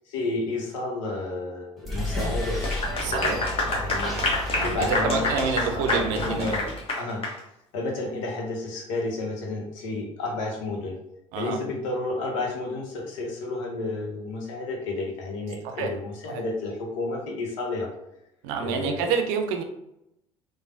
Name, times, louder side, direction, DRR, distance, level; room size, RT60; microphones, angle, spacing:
voice 1, 0.1-2.7 3.0-6.6 6.9-7.2 7.7-11.0 11.4-17.9 18.6-19.1, left 2 dB, 80° left, 1 dB, 0.7 m, -31 dB
sound 1, 1.8-6.8, left 1 dB, ahead, 1.1 m, -32 dB
Clapping / Applause, 2.5-7.4, left 2 dB, 35° left, 0.8 m, -28 dB
voice 2, 3.0-3.4 4.5-6.6 11.3-11.6 15.6-15.9 16.3-16.4 18.4-19.6, right 5 dB, 70° right, 5 dB, 0.5 m, -28 dB
3.2 x 2.1 x 2.5 m, 0.82 s
hypercardioid pair, 65°, 16 cm